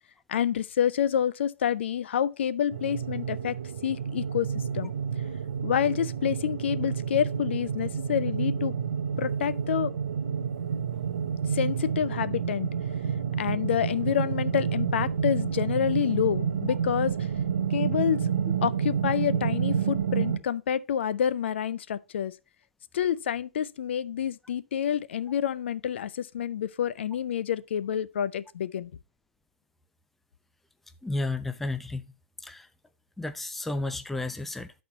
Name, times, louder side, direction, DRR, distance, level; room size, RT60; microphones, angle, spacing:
voice 1, 0.3-3.6 3.8-4.9 5.6-8.7 9.2-9.9 11.5-12.7 13.4-17.3 17.7-18.3 18.6-22.3 22.9-28.9, left 9 dB, 65° left, 0.4 m, -28 dB
sound 1, 2.7-20.4, right 7 dB, 70° right, 0.8 m, -29 dB
voice 2, 31.0-32.0 32.4-32.7 33.2-34.7, left 2 dB, 5° left, 0.4 m, -32 dB
12.5 x 4.3 x 3.0 m
hypercardioid pair, 135°, 7 cm